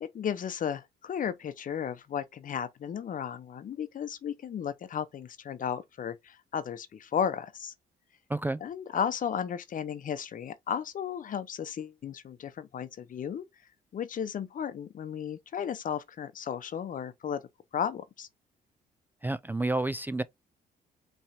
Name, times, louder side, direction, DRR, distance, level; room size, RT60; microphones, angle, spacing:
voice 1, 0.0-7.7 8.6-13.4 13.9-17.4 17.7-18.3, left 8 dB, 50° left, 0.8 m, -34 dB
voice 2, 19.2-20.2, right 2 dB, 10° right, 0.3 m, -30 dB
5.7 x 3.2 x 2.7 m
cardioid pair, 90°, 17 cm